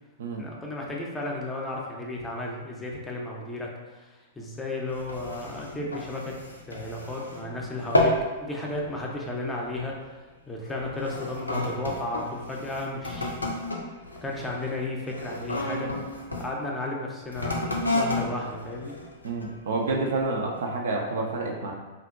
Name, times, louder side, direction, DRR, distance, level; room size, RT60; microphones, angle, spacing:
voice 1, 0.4-6.4 6.7-13.4 14.2-15.9 16.4-17.6 17.9-18.9, left 2 dB, 10° left, -2 dB, 0.5 m, -34 dB
sound 1, 4.9-7.5 7.8-8.3 8.7-9.0 9.7-9.9 10.7-16.5 17.3-19.6 20.2-20.3, left 1 dB, 90° left, 0.4 m, -31 dB
voice 2, 19.2-21.7, right 3 dB, 65° right, 0 dB, 0.4 m, -28 dB
2.8 x 2.5 x 2.4 m, 1.2 s
figure-of-eight pair, 100°, 0 cm